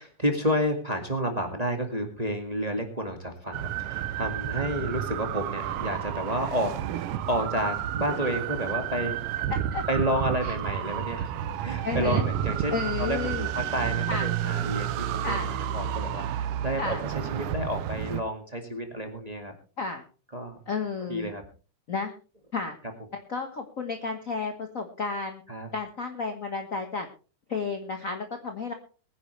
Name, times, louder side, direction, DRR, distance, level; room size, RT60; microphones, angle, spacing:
voice 1, 0.0-9.2 9.9-11.3 11.6-19.5 20.3-20.6 21.1-21.4 25.5-25.7, equal, 15° right, 4 dB, 1.5 m, -30 dB
sound 1, 3.5-18.2, right 10 dB, 90° right, 1.3 m, -31 dB
voice 2, 11.8-12.2 12.7-13.5 14.1-14.3 15.2-15.5 16.8-17.0 19.8-20.0 20.7-21.3 21.9-22.1 22.5-22.8 23.3-25.4 25.7-27.1 27.5-28.7, left 4 dB, 60° left, 5 dB, 0.8 m, -32 dB
22.5 x 9.9 x 3.3 m, 0.36 s
omnidirectional pair, 3.6 m